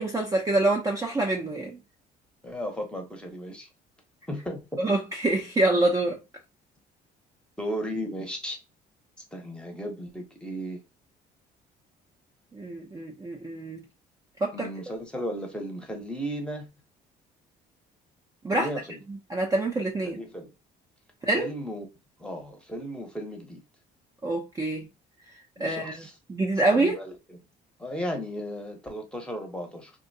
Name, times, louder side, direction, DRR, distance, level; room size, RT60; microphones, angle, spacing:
voice 1, 0.0-1.8 4.8-6.2 12.5-13.8 14.4-14.7 18.4-18.7 19.1-20.2 21.2-21.5 24.2-24.9 25.6-26.9, right 2 dB, 20° right, 0.5 m, -26 dB
voice 2, 2.4-3.7 4.3-4.8 7.6-8.6 9.3-10.8 14.5-16.7 18.5-19.0 20.0-20.5 21.4-21.9 22.2-23.6 25.6-26.1 26.7-27.4 27.8-29.9, equal, 5° left, 0.8 m, -35 dB
2.6 x 2.1 x 2.6 m
cardioid pair, 110°, 17 cm